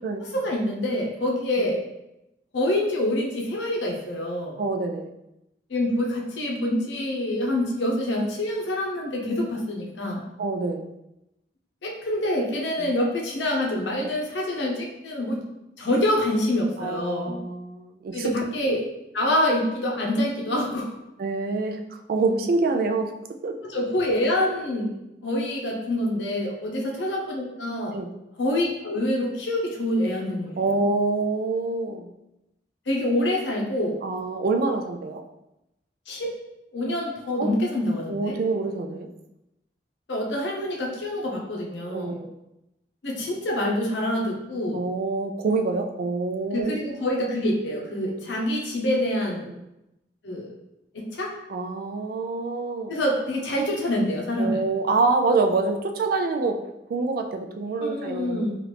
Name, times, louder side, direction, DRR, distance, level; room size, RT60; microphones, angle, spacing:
voice 1, 0.2-1.8 2.5-4.6 5.7-10.2 11.8-15.4 15.8-17.4 18.1-18.9 19.1-20.9 23.6-24.9 25.2-28.0 28.4-30.6 32.9-34.0 36.1-36.3 36.7-38.3 40.1-42.2 43.0-44.8 46.5-49.5 50.2-50.5 50.9-51.3 52.9-54.6 57.8-58.5, left 1 dB, 80° left, -1 dB, 0.7 m, -26 dB
voice 2, 4.6-5.1 10.4-10.9 12.8-12.9 16.8-18.3 21.2-21.8 22.1-23.1 23.4-23.8 27.9-28.1 30.6-32.1 34.0-35.2 37.4-37.5 38.1-39.1 41.9-42.3 44.7-46.8 49.5-49.6 51.5-52.9 54.4-56.6 56.9-58.5, right 3 dB, 55° right, 5 dB, 0.3 m, -26 dB
3.1 x 2.4 x 3.2 m, 0.91 s
head